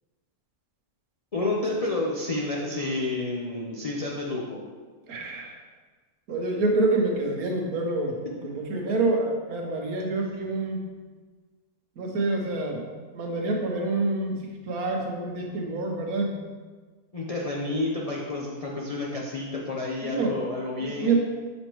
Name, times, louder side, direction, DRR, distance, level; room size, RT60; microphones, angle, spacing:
voice 1, 1.3-4.6 17.1-21.1, left 2 dB, 50° left, -4 dB, 0.4 m, -30 dB
voice 2, 5.1-5.6 6.3-8.1 8.4-10.8 12.0-12.8 13.1-14.4 14.7-16.3 20.0-20.3 20.8-21.2, right 3 dB, 75° right, 1 dB, 1.4 m, -27 dB
6.6 x 5.3 x 3.0 m, 1.4 s
omnidirectional pair, 1.6 m